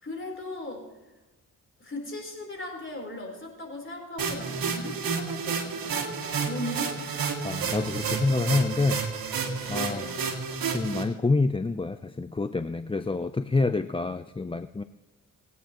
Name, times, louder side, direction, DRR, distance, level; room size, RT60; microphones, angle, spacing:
voice 1, 0.0-0.9 1.8-6.0 6.4-6.9 9.6-10.2, left 1 dB, 35° left, 1 dB, 3.9 m, -38 dB
sound 1, 4.2-11.0, right 5 dB, 85° right, 1.9 m, -30 dB
voice 2, 7.4-9.0 9.7-10.1 10.7-14.8, left 3 dB, 15° left, 11 dB, 0.5 m, -27 dB
21.0 x 9.3 x 3.0 m, 1.1 s
cardioid pair, 55°, 34 cm